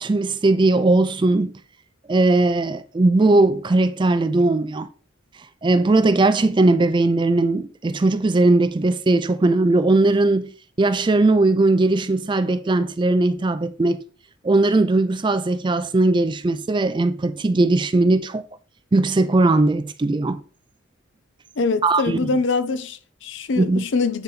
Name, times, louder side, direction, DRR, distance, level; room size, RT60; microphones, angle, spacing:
voice 1, 0.0-1.5 2.1-4.9 5.6-10.5 10.8-14.0 14.4-18.5 18.9-20.4 21.8-22.3 23.6-23.8, right 2 dB, 25° right, 0.4 m, -19 dB
voice 2, 21.6-24.2, left 4 dB, 70° left, 0.6 m, -24 dB
8.2 x 4.1 x 4.0 m
head